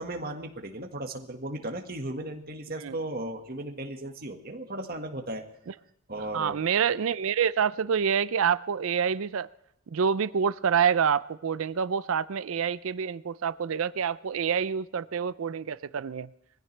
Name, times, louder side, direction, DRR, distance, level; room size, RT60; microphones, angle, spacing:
voice 1, 0.0-5.4 6.1-6.6, right 1 dB, 45° right, 4 dB, 1.7 m, -36 dB
voice 2, 6.3-9.5 9.9-16.3, right 7 dB, 70° right, 17 dB, 0.4 m, -27 dB
22.0 x 16.0 x 3.3 m, 0.80 s
head